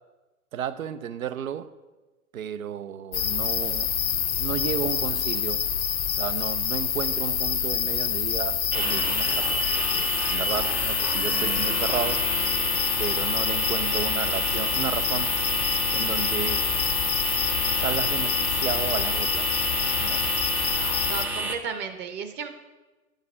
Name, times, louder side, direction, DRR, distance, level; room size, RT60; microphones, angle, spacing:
voice 1, 0.5-1.7 2.3-3.9 4.4-5.6 6.1-12.2 13.0-15.3 15.9-16.6 17.8-19.6 20.0-20.2, right 9 dB, 70° right, 13 dB, 0.7 m, -33 dB
sound 1, 3.1-21.3, left 9 dB, 70° left, 0.9 m, -26 dB
sound 2, 8.7-21.5, right 2 dB, 5° right, 0.4 m, -30 dB
voice 2, 20.7-22.5, right 6 dB, 25° right, 7 dB, 0.9 m, -34 dB
10.0 x 6.6 x 6.2 m, 1.2 s
figure-of-eight pair, 100°, 43 cm